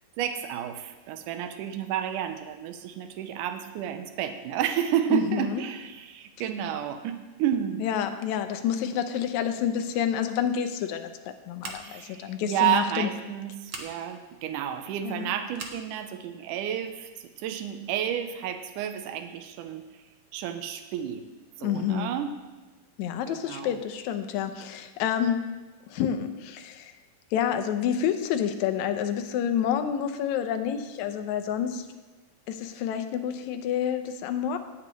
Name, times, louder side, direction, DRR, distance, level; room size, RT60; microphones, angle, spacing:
voice 1, 0.2-7.8 11.8-17.1 17.4-19.8 20.3-21.2 21.6-22.3 23.3-23.8, right 10 dB, 80° right, 8 dB, 2.2 m, -31 dB
voice 2, 5.1-5.6 7.8-11.1 11.5-13.1 15.0-15.3 21.6-22.1 23.0-25.5 25.9-26.9 27.3-31.9 32.5-34.6, left 9 dB, 75° left, 7 dB, 1.9 m, -28 dB
Scissors, 11.6-12.1 13.6-13.9 15.5-15.8, right 4 dB, 60° right, 1.3 m, -39 dB
18.0 x 8.0 x 3.1 m, 1.2 s
omnidirectional pair, 3.7 m